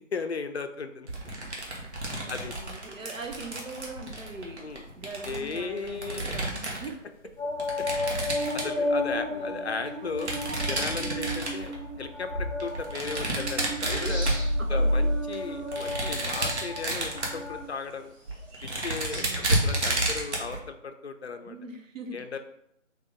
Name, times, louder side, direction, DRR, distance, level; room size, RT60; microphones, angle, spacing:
voice 1, 0.1-1.1 2.3-2.5 4.6-4.8 5.2-6.4 8.5-10.3 10.7-11.7 12.0-14.3 14.7-18.1 18.6-21.5 22.1-22.4, left 4 dB, 55° left, 8 dB, 0.4 m, -36 dB
sound 1, 1.1-6.9 7.6-9.1 10.1-11.8 12.6-14.9 15.3-17.5 17.9-18.0 18.3-20.6, right 1 dB, 60° right, 1.1 m, -31 dB
voice 2, 2.1-7.5 8.6-8.9 9.3-9.9 13.8-14.2 14.6-14.9 15.7-16.2 19.1-19.9 21.4-22.4, right 3 dB, 80° right, 4 dB, 0.8 m, -42 dB
sound 2, 7.4-17.6, left 1 dB, 5° left, 0.9 m, -31 dB
sound 3, 13.4-19.2, equal, 25° right, 1.3 m, -47 dB
3.5 x 2.8 x 3.6 m, 0.74 s
figure-of-eight pair, 160°, 39 cm